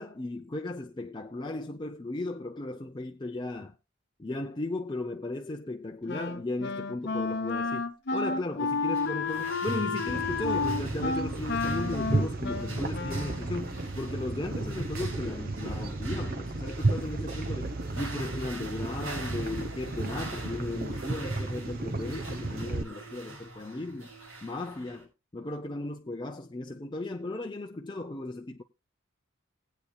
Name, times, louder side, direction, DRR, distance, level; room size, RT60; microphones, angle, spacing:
voice 1, 0.0-3.8 4.2-24.1 24.4-28.6, left 2 dB, 20° left, 0.6 m, -36 dB
Wind instrument woodwind instrument, 6.1-13.5, left 4 dB, 55° left, 0.9 m, -31 dB
sound 1, 8.9-25.0, right 2 dB, 80° right, 6.2 m, -43 dB
sound 2, 10.1-22.8, right 2 dB, 45° right, 1.0 m, -33 dB
20.0 x 8.6 x 2.3 m
head